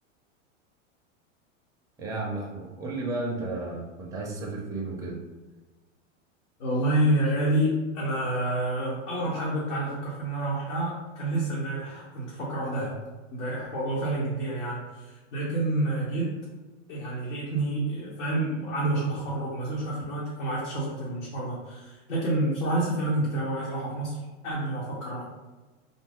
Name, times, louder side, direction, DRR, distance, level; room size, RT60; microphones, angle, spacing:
voice 1, 2.0-5.2, right 2 dB, 10° right, -2 dB, 0.4 m, -33 dB
voice 2, 6.6-12.9 13.3-16.3 16.9-24.2 24.4-25.2, right 1 dB, 75° left, -6 dB, 1.1 m, -28 dB
2.6 x 2.2 x 3.4 m, 1.2 s
hypercardioid pair, 130°, 38 cm